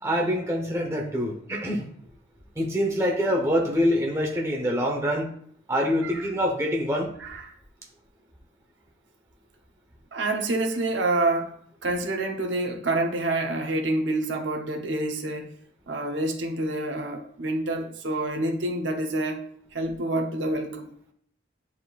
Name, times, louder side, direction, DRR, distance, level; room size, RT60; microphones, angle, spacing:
voice 1, 0.0-1.9 2.5-5.3 5.7-7.1, equal, 15° right, 1.0 m, -25 dB
voice 2, 10.1-11.6 11.8-15.5 15.9-19.4 19.7-20.9, right 2 dB, 85° right, 0.9 m, -27 dB
9.3 x 4.3 x 2.5 m
head